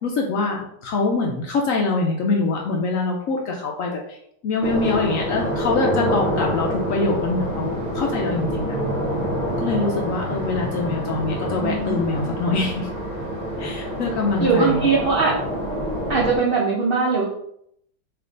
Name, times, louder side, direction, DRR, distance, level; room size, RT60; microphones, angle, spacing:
voice 1, 0.0-4.2 4.4-8.7 9.6-12.9 13.6-14.8, left 3 dB, 70° left, 0 dB, 0.8 m, -24 dB
sound 1, 4.6-16.4, equal, 40° right, 1.0 m, -26 dB
voice 2, 11.6-12.0 14.4-15.3 16.1-17.3, right 4 dB, 65° right, -3 dB, 0.5 m, -20 dB
3.4 x 2.9 x 3.7 m, 0.72 s
omnidirectional pair, 1.8 m